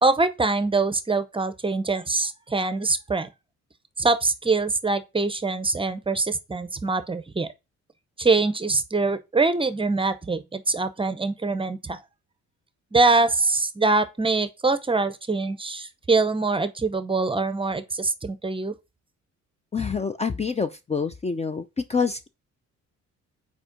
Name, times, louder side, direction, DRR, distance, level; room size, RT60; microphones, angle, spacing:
voice 1, 0.0-3.3 4.0-7.5 8.2-12.0 12.9-18.7, right 3 dB, 15° right, 0.7 m, -24 dB
voice 2, 19.7-21.6 21.9-22.3, left 5 dB, 20° left, 0.5 m, -26 dB
4.9 x 4.6 x 5.1 m
cardioid pair, 90°, 30 cm